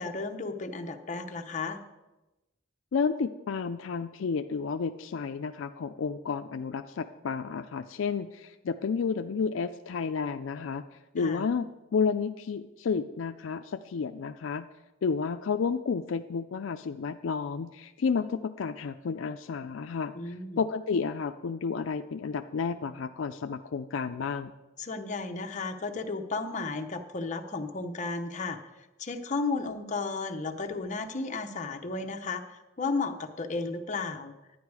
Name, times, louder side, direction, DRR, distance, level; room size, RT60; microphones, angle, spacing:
voice 1, 0.0-1.8 11.2-11.4 20.1-20.6 24.8-34.3, left 3 dB, 40° left, 5 dB, 0.8 m, -34 dB
voice 2, 2.9-10.8 11.1-14.7 15.0-20.1 20.6-24.5, left 5 dB, 75° left, 9 dB, 0.4 m, -31 dB
11.0 x 9.5 x 4.8 m, 1.0 s
head